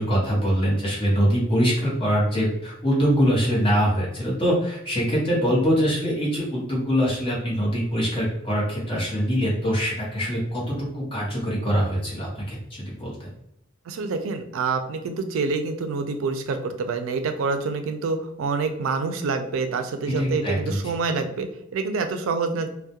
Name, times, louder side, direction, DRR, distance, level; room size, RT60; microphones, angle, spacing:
voice 1, 0.0-13.3 20.1-20.8, equal, 25° left, -5 dB, 0.8 m, -23 dB
voice 2, 13.9-22.7, right 4 dB, 85° right, 7 dB, 0.4 m, -27 dB
2.3 x 2.0 x 2.7 m, 0.80 s
head